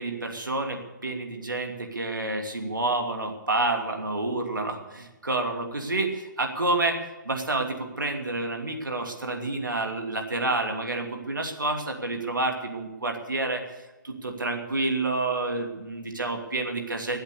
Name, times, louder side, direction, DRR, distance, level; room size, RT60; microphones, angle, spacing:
voice 1, 0.0-13.8 14.0-17.2, right 2 dB, 75° right, 3 dB, 2.8 m, -29 dB
22.5 x 8.0 x 6.8 m, 1.1 s
figure-of-eight pair, 135°, 11 cm